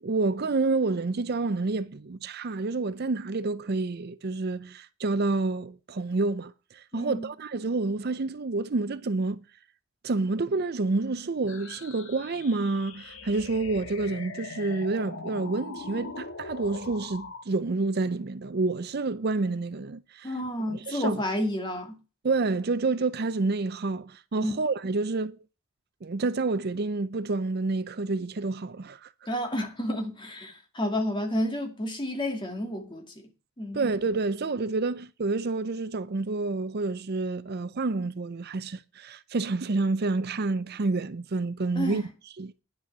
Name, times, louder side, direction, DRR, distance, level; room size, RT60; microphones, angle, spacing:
voice 1, 0.0-9.4 10.0-20.3 20.7-21.2 22.2-25.4 26.0-29.1 33.7-42.1 42.4-42.5, right 3 dB, 50° right, 0.6 m, -28 dB
voice 2, 6.9-7.3 20.2-22.0 24.4-24.5 29.3-33.0 33.6-33.9 41.8-42.1, left 1 dB, 25° left, 2.3 m, -30 dB
sound 1, 11.5-17.5, left 4 dB, 65° left, 1.6 m, -41 dB
10.5 x 6.8 x 7.4 m
head